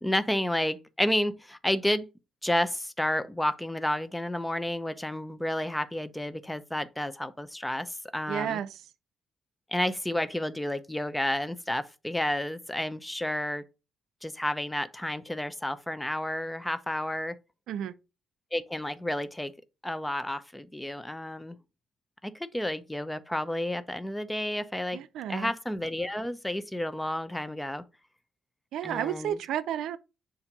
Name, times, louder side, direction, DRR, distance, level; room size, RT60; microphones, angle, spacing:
voice 1, 0.0-2.1 2.4-8.6 9.7-13.6 14.2-17.4 18.5-19.5 19.8-21.6 22.2-25.0 25.3-27.8 28.8-29.4, left 1 dB, 5° left, 0.6 m, -31 dB
voice 2, 8.3-8.8 17.7-17.9 24.9-25.5 28.7-30.0, right 10 dB, 80° right, 0.4 m, -32 dB
7.1 x 2.6 x 5.3 m
cardioid pair, 90°, 0 cm